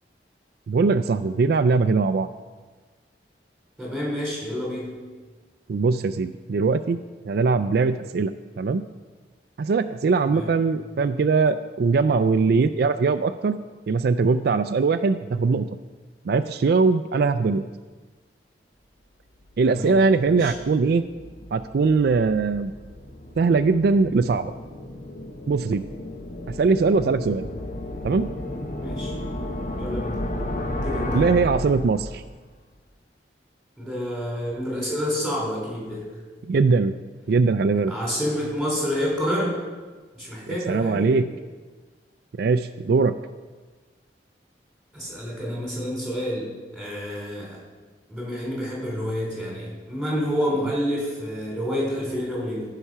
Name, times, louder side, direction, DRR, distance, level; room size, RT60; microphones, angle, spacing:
voice 1, 0.7-2.3 5.7-7.0 7.2-8.3 8.6-8.8 9.6-13.6 13.9-15.7 16.3-17.7 19.6-21.0 21.5-22.7 23.4-24.5 25.5-25.9 26.5-27.5 28.0-28.3 31.1-32.2 36.5-36.9 37.3-37.9 40.7-41.3 42.4-43.2, right 4 dB, 60° right, 10 dB, 0.4 m, -21 dB
voice 2, 3.8-5.0 10.2-10.5 19.6-20.0 20.3-20.5 28.8-29.1 29.8-30.2 30.8-31.3 33.8-36.0 37.9-39.6 40.2-41.2 44.9-47.6 48.1-52.6, equal, 5° left, -5 dB, 4.1 m, -28 dB
sound 1, 19.5-32.4, left 1 dB, 45° left, 0.9 m, -33 dB
14.5 x 5.8 x 5.6 m, 1.4 s
head